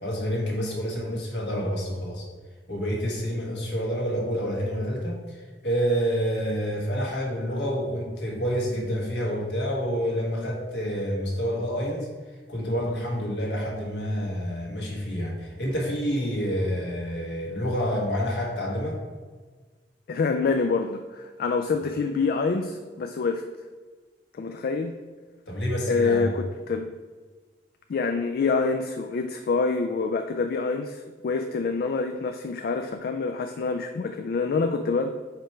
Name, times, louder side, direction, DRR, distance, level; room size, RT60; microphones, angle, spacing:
voice 1, 0.0-2.3 2.7-12.1 12.5-19.0 25.5-26.3, equal, 70° left, -2 dB, 1.4 m, -28 dB
voice 2, 20.1-23.5 24.3-25.0 25.9-26.9 27.9-35.1, left 4 dB, 55° left, 6 dB, 0.3 m, -26 dB
5.0 x 4.6 x 4.4 m, 1.4 s
head